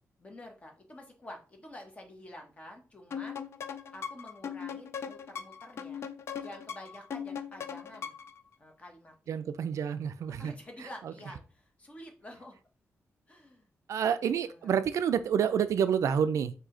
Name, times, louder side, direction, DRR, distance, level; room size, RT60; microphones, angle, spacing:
voice 1, 0.2-3.4 3.9-6.1 6.4-8.1 8.6-9.4 10.3-12.6 13.3-13.7 14.4-14.8, left 1 dB, 25° left, 0.9 m, -49 dB
sound 1, 3.1-8.4, left 7 dB, 55° left, 0.4 m, -39 dB
voice 2, 9.3-10.5 13.9-16.5, right 8 dB, 75° right, 0.3 m, -28 dB
4.8 x 2.7 x 3.7 m
wide cardioid pair, 180°, 5 cm